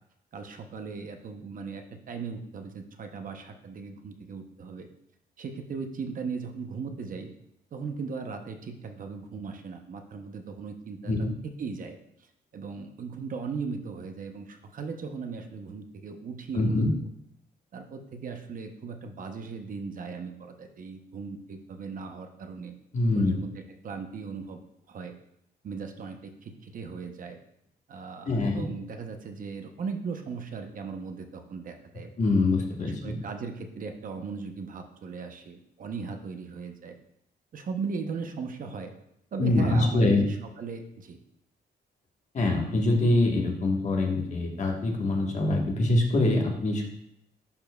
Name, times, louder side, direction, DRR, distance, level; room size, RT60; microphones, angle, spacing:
voice 1, 0.3-4.9 5.4-7.3 7.7-16.8 17.7-22.7 23.1-24.6 24.9-25.1 25.6-27.4 27.9-32.1 33.0-37.0 37.5-38.9 39.3-41.2, right 5 dB, 50° right, 5 dB, 0.7 m, -38 dB
voice 2, 16.5-16.9 22.9-23.4 28.2-28.7 32.2-33.2 39.4-40.2 42.3-46.9, left 2 dB, 45° left, 1 dB, 1.3 m, -24 dB
11.0 x 4.4 x 2.3 m, 0.75 s
cardioid pair, 115°, 17 cm